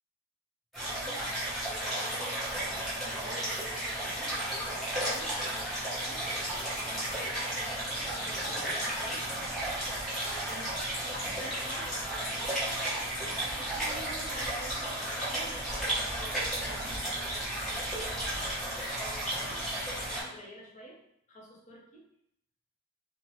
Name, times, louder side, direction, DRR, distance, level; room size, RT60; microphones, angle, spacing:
sound 1, 0.7-20.2, right 1 dB, ahead, 1.0 m, -33 dB
voice 1, 0.8-6.3 6.8-9.2 10.3-12.8 13.5-21.0 21.3-22.0, equal, 35° left, -3 dB, 0.7 m, -48 dB
2.7 x 2.1 x 3.1 m, 0.73 s
head